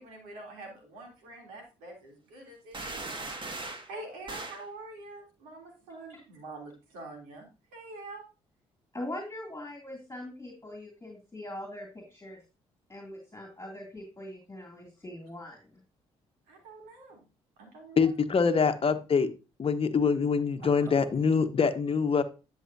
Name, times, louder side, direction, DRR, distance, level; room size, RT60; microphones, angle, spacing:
voice 1, 0.0-3.1 3.9-7.4 7.7-8.2 16.5-17.2 17.6-18.1 20.8-21.1, right 2 dB, 85° right, 1 dB, 3.2 m, -45 dB
sound 1, 2.7-3.9 4.3-4.6, right 2 dB, 35° right, 1.9 m, -38 dB
voice 2, 8.9-12.4 12.9-15.8, left 1 dB, 20° left, 1 dB, 2.7 m, -42 dB
voice 3, 18.0-19.3 19.6-22.2, left 5 dB, 40° left, 9 dB, 1.1 m, -25 dB
11.0 x 6.8 x 2.7 m, 0.30 s
hypercardioid pair, 50°, 14 cm